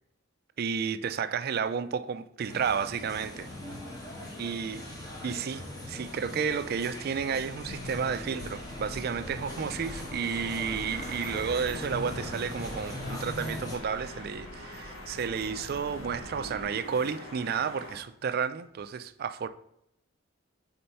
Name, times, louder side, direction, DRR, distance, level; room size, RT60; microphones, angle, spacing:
voice 1, 0.6-3.5 4.4-4.9 5.2-19.5, right 6 dB, 50° right, 0.4 m, -32 dB
sound 1, 2.4-13.8, left 1 dB, 20° left, 1.2 m, -41 dB
sound 2, 3.1-18.0, left 1 dB, 70° left, 2.2 m, -46 dB
sound 3, 7.5-16.6, left 1 dB, 40° left, 1.0 m, -45 dB
4.4 x 4.3 x 5.4 m
head